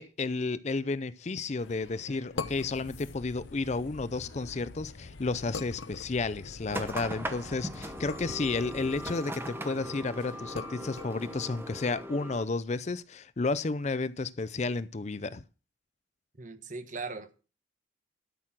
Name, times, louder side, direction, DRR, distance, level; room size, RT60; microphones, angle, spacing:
voice 1, 0.0-15.4, left 3 dB, 35° left, 0.5 m, -32 dB
sound 1, 1.6-12.0, left 4 dB, 85° left, 1.0 m, -45 dB
sound 2, 2.4-9.1, left 2 dB, 60° left, 0.8 m, -49 dB
sound 3, 6.7-12.4, equal, 10° right, 1.0 m, -39 dB
voice 2, 16.4-17.4, right 3 dB, 40° right, 1.2 m, -39 dB
12.5 x 6.6 x 6.0 m
head